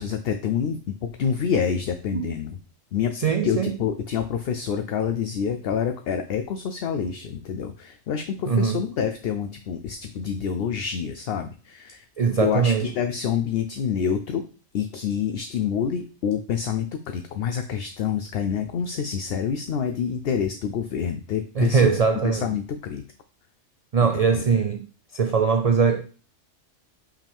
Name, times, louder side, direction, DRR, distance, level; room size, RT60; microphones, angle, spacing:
voice 1, 0.0-2.6 2.9-3.1 3.4-12.0 12.4-14.5 14.7-22.0 22.2-23.0 24.3-24.4, left 7 dB, 65° left, 0.7 m, -27 dB
voice 2, 3.1-3.7 8.5-8.8 12.2-12.9 21.6-22.5 23.9-24.9 25.1-26.0, right 5 dB, 75° right, 0.3 m, -21 dB
5.6 x 4.9 x 3.4 m
omnidirectional pair, 1.3 m